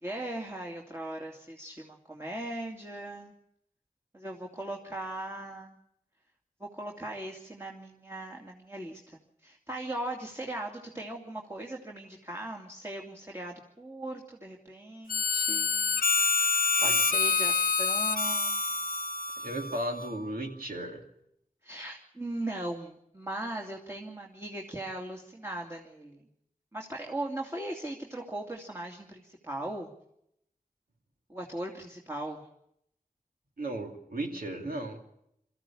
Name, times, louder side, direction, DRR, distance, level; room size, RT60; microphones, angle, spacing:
voice 1, 0.0-3.3 4.1-5.8 6.6-16.0 16.8-18.8 21.6-26.2 26.7-29.9 31.3-32.5, right 1 dB, 20° right, 0 dB, 2.5 m, -39 dB
Harmonica, 15.1-20.3, left 4 dB, 75° left, 0.8 m, -27 dB
voice 2, 19.4-21.0 33.6-35.0, right 1 dB, 90° right, 2 dB, 2.7 m, -35 dB
23.0 x 14.5 x 8.5 m, 0.79 s
wide cardioid pair, 55°, 15 cm